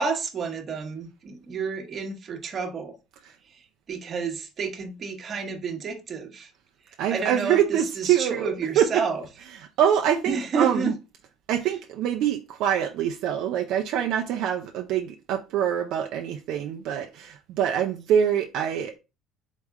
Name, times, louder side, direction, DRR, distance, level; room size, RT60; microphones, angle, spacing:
voice 1, 0.0-3.0 3.5-6.5 7.1-9.2 10.3-10.9, right 5 dB, 40° right, 1.2 m, -30 dB
voice 2, 7.0-8.9 9.8-10.9 11.5-19.0, right 9 dB, 65° right, 0.6 m, -25 dB
4.2 x 3.4 x 3.5 m
cardioid pair, 115°, 0 cm